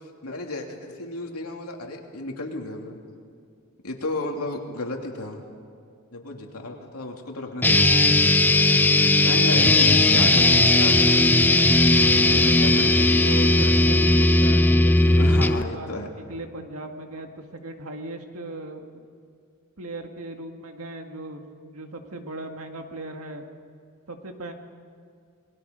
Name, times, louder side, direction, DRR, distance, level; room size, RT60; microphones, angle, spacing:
voice 1, 0.2-3.0 3.8-5.4 6.1-7.9 9.1-11.5 12.2-13.1 15.2-16.1, left 2 dB, 85° left, 1 dB, 2.9 m, -33 dB
voice 2, 6.5-6.8 9.2-9.7 12.3-12.7 13.2-19.0 19.8-23.4 24.1-24.5, right 2 dB, 75° right, 4 dB, 2.1 m, -37 dB
sound 1, 7.6-15.6, left 2 dB, 10° left, 0.5 m, -17 dB
28.0 x 20.5 x 5.3 m, 2.4 s
head